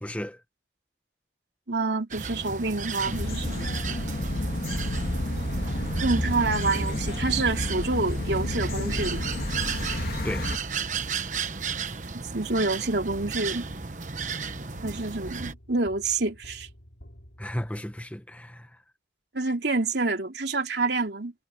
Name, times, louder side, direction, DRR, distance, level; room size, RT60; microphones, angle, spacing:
voice 1, 0.0-0.4 10.2-10.5 17.4-18.8, equal, 10° left, 1.4 m, -34 dB
voice 2, 1.7-3.7 6.0-9.4 12.1-13.6 14.8-16.7 19.3-21.3, right 3 dB, 70° right, 3.0 m, -27 dB
sound 1, 2.1-15.5, right 5 dB, 45° right, 1.1 m, -34 dB
sound 2, 3.1-10.6, left 1 dB, 55° left, 2.1 m, -30 dB
sound 3, 13.0-18.2, equal, 75° left, 4.9 m, -49 dB
head